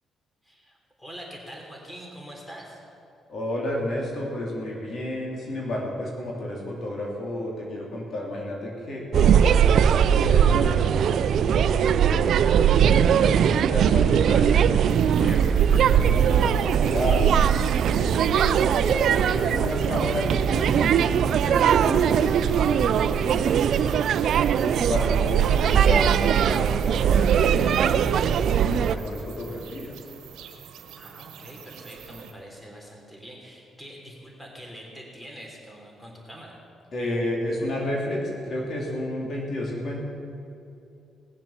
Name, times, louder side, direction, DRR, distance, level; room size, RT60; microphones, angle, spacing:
voice 1, 0.4-2.8 30.9-36.6, equal, 10° left, -1 dB, 3.5 m, -44 dB
voice 2, 3.3-9.4 10.0-14.6 15.2-17.3 17.8-24.0 24.6-29.9 36.9-40.0, left 1 dB, 55° left, -2 dB, 3.0 m, -31 dB
sound 1, 9.1-29.0, right 8 dB, 70° right, 0.5 m, -20 dB
sound 2, 14.9-32.3, right 8 dB, 90° right, 1.2 m, -47 dB
19.5 x 7.4 x 7.2 m, 2.7 s
cardioid pair, 90°, 0 cm